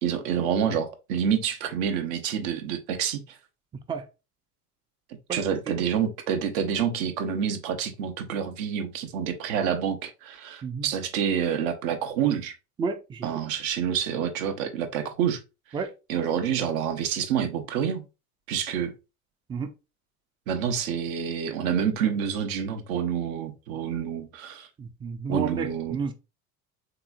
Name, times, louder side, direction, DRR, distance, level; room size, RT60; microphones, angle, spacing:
voice 1, 0.0-3.4 5.3-12.5 13.2-15.4 16.1-18.0 18.5-18.9 20.5-24.7 25.3-26.0, right 8 dB, 65° right, 0.9 m, -28 dB
voice 2, 5.3-5.8 10.6-10.9 12.8-13.3 15.7-15.9 19.5-19.7 24.8-26.1, right 5 dB, 10° right, 0.3 m, -31 dB
3.6 x 2.9 x 2.4 m
hypercardioid pair, 70°, 44 cm